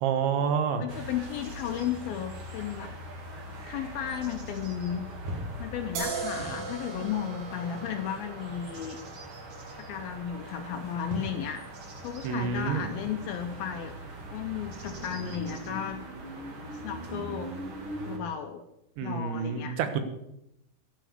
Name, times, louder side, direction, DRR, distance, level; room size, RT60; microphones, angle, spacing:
voice 1, 0.0-0.9 12.2-12.9 19.0-20.0, right 7 dB, 80° right, 8 dB, 3.6 m, -28 dB
voice 2, 0.8-2.9 3.7-5.1 5.6-9.0 9.9-11.6 12.0-14.0 14.3-16.0 16.7-17.5 18.0-18.6 19.0-19.8, left 9 dB, 75° left, 6 dB, 2.2 m, -34 dB
sound 1, 0.9-18.2, right 1 dB, 45° right, 1.8 m, -41 dB
sound 2, 6.0-13.3, right 4 dB, 65° right, 3.8 m, -41 dB
13.0 x 10.5 x 6.7 m, 0.83 s
omnidirectional pair, 5.2 m